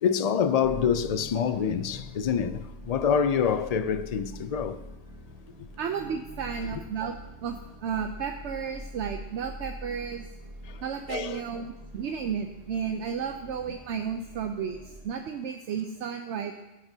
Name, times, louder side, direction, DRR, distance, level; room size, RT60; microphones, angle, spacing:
voice 1, 0.0-4.8 5.6-5.7 10.7-10.8 11.1-11.4, left 7 dB, 65° left, 0.4 m, -26 dB
sound 1, 0.6-15.0, equal, 35° right, 1.8 m, -45 dB
voice 2, 5.8-7.1 7.4-10.3 10.8-16.5, right 7 dB, 70° right, 0.9 m, -33 dB
12.5 x 12.0 x 2.7 m
omnidirectional pair, 1.2 m